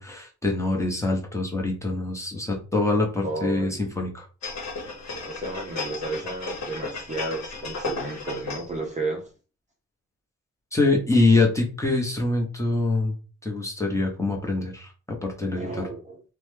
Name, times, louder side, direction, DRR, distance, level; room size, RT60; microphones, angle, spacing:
voice 1, 0.0-4.2 10.7-13.1 13.4-14.9 15.2-15.8, left 2 dB, 10° left, 0 dB, 0.8 m, -24 dB
voice 2, 3.2-4.0 5.2-9.3 15.5-16.2, right 3 dB, 25° right, 0 dB, 0.5 m, -33 dB
sound 1, 4.4-8.8 9.2-9.3, left 3 dB, 65° left, 1.0 m, -34 dB
3.0 x 2.2 x 3.2 m, 0.35 s
cardioid pair, 125°, 29 cm